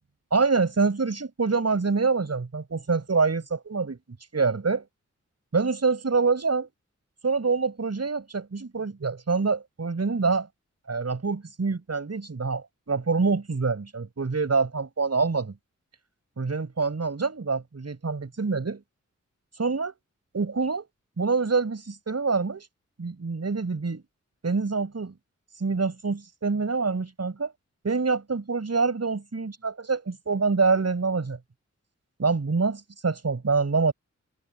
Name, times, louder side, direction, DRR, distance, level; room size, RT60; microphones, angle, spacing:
voice 1, 0.3-4.0 4.3-4.9 5.5-6.7 7.2-10.5 10.9-15.5 16.4-18.8 19.6-19.9 20.3-20.9 21.2-22.7 23.0-24.0 24.4-25.1 25.6-27.5 27.8-31.4 32.2-33.9, right 4 dB, 55° right, 7.3 m, -26 dB
wide cardioid pair, 65°, 30 cm